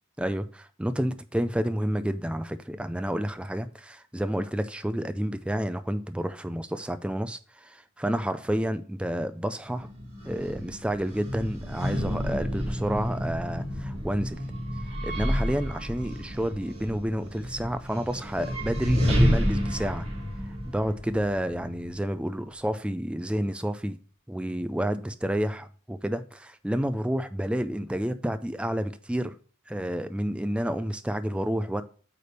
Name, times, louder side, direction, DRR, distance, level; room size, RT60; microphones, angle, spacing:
voice 1, 0.2-9.9 10.2-14.4 15.0-20.1 20.7-24.0 24.3-29.4 29.7-31.8, equal, 5° right, 0.4 m, -30 dB
sound 1, 9.7-21.9, equal, 30° right, 2.4 m, -30 dB
8.4 x 3.4 x 6.6 m
head